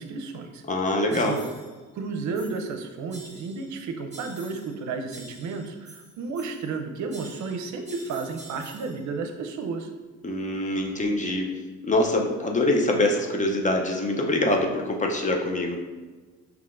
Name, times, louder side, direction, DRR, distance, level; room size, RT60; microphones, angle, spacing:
voice 1, 0.0-0.6 1.1-1.5 1.9-9.9, right 4 dB, 70° right, 6 dB, 0.6 m, -32 dB
voice 2, 0.7-1.4 10.2-11.5 11.8-15.8, left 1 dB, 25° left, 2 dB, 0.6 m, -24 dB
sound 1, 1.1-1.7 2.3-2.7 3.1-3.7 4.1-4.8 5.1-6.8 7.1-9.0, right 1 dB, 25° right, 1.2 m, -47 dB
5.5 x 2.9 x 2.5 m, 1.3 s
cardioid pair, 90°, 30 cm